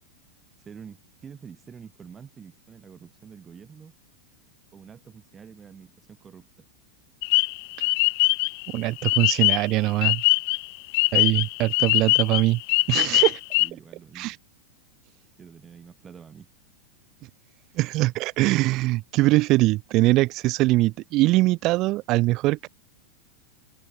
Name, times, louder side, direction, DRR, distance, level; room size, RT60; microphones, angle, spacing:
voice 1, 0.6-4.0 4.7-6.7 13.6-14.4 15.4-16.5, right 7 dB, 20° right, 4.4 m, -47 dB
sound 1, 7.2-9.7 10.0-13.7, left 29 dB, 45° left, 0.6 m, -22 dB
voice 2, 8.7-10.2 11.1-12.6 12.9-13.4 14.2-14.4 17.8-22.7, right 19 dB, 40° right, 0.4 m, -22 dB
open air
figure-of-eight pair, 90°, 0 cm